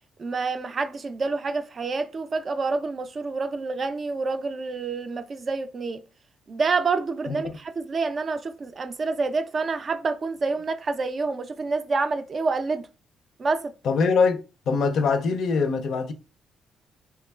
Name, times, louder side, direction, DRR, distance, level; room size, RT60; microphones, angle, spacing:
voice 1, 0.2-6.0 6.5-12.8 13.4-13.7, right 4 dB, 40° right, 0.3 m, -27 dB
voice 2, 7.3-7.6 13.8-14.4 14.7-16.1, left 4 dB, 65° left, 0.4 m, -23 dB
2.9 x 2.3 x 2.2 m
cardioid pair, 90°, 0 cm